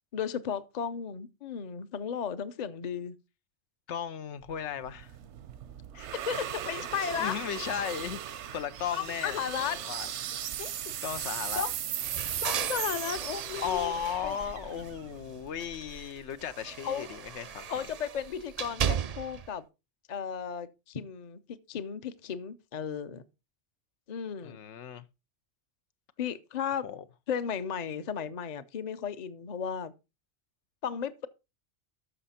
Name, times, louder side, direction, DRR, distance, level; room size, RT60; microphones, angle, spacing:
voice 1, 0.1-3.2 5.9-7.4 8.9-9.8 10.6-10.7 11.6-11.7 12.4-13.9 14.2-14.3 16.8-17.1 17.7-19.6 20.1-23.3 24.1-24.6 26.2-26.9 27.3-29.9 30.8-31.3, left 8 dB, 45° left, 0.7 m, -34 dB
voice 2, 3.9-5.1 7.2-10.1 11.0-11.6 13.6-17.7 24.4-25.0 26.8-27.1, left 9 dB, 85° left, 1.0 m, -36 dB
sound 1, 4.5-15.7, right 10 dB, 85° right, 1.0 m, -37 dB
sound 2, 12.0-15.2 15.5-19.5, right 8 dB, 50° right, 0.5 m, -37 dB
13.0 x 5.8 x 4.2 m
omnidirectional pair, 1.1 m